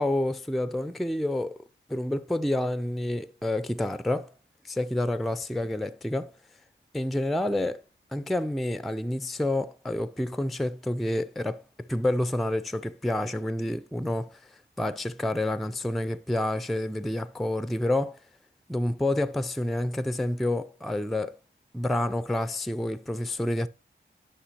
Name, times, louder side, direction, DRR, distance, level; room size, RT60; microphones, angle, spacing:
voice 1, 0.0-1.6 1.9-4.3 4.6-6.4 6.9-7.8 8.1-18.2 18.7-21.4 21.7-23.7, left 1 dB, ahead, 0.3 m, -29 dB
10.0 x 5.7 x 2.8 m
cardioid pair, 50°, 21 cm